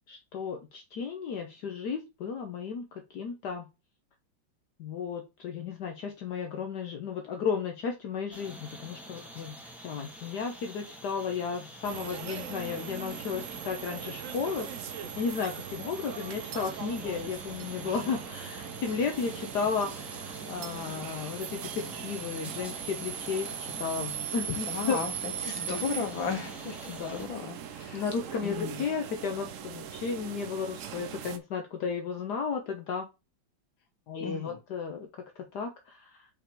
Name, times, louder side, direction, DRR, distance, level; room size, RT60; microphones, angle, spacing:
voice 1, 0.1-3.7 4.8-25.0 25.6-25.8 26.9-27.3 27.9-33.1 34.1-36.3, left 6 dB, 65° left, 1.3 m, -34 dB
sound 1, 8.3-27.3, equal, ahead, 1.3 m, -47 dB
sound 2, 11.8-31.4, right 9 dB, 70° right, 0.7 m, -39 dB
voice 2, 24.7-28.0 28.4-28.8 34.2-34.6, left 5 dB, 80° left, 2.2 m, -35 dB
5.2 x 4.3 x 4.4 m
omnidirectional pair, 2.1 m